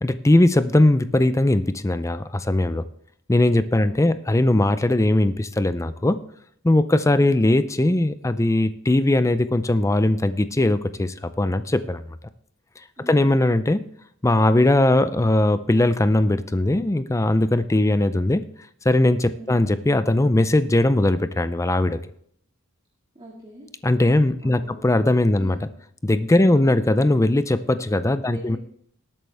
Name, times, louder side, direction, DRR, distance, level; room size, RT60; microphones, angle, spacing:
voice 1, 0.0-2.8 3.3-6.2 6.6-12.0 13.1-13.8 14.2-18.4 18.8-22.0 23.8-25.6 26.0-28.6, left 1 dB, 15° left, 12 dB, 0.5 m, -19 dB
voice 2, 3.7-4.2 13.0-13.3 19.3-19.7 23.1-23.7 24.4-24.8 25.3-25.8 26.4-26.9 28.3-28.6, equal, 25° right, -2 dB, 2.1 m, -42 dB
18.5 x 8.7 x 3.4 m, 0.66 s
head